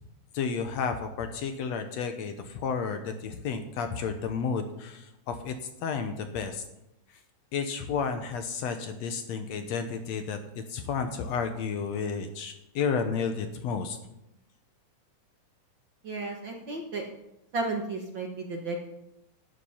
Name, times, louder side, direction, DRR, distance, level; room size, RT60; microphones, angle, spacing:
voice 1, 0.3-5.6 5.8-6.6 7.5-14.0, left 6 dB, 70° left, 7 dB, 1.9 m, -32 dB
voice 2, 16.0-17.1 17.5-18.9, right 2 dB, 50° right, 1 dB, 1.6 m, -33 dB
12.0 x 9.7 x 5.6 m, 0.85 s
omnidirectional pair, 3.5 m